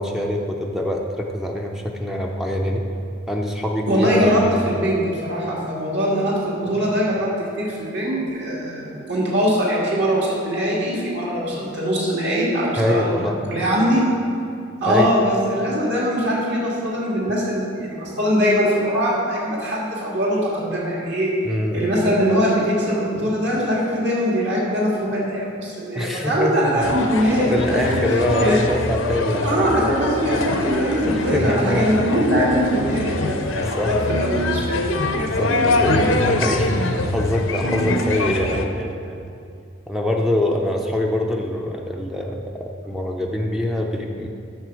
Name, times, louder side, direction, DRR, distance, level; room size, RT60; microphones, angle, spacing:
voice 1, 0.0-2.8 3.3-4.5 12.8-13.4 14.9-15.1 21.4-21.9 25.9-26.8 27.2-29.9 31.1-31.9 33.8-33.9 35.4-39.2 39.9-42.5 42.8-44.3, left 1 dB, ahead, 0 dB, 0.5 m, -24 dB
voice 2, 3.9-7.3 7.6-13.2 13.5-14.0 14.8-21.3 21.7-27.8 28.4-28.6 29.4-34.8, equal, 55° right, -5 dB, 2.4 m, -21 dB
sound 1, 26.8-38.6, left 2 dB, 80° left, 0.7 m, -23 dB
7.9 x 6.6 x 6.2 m, 2.4 s
head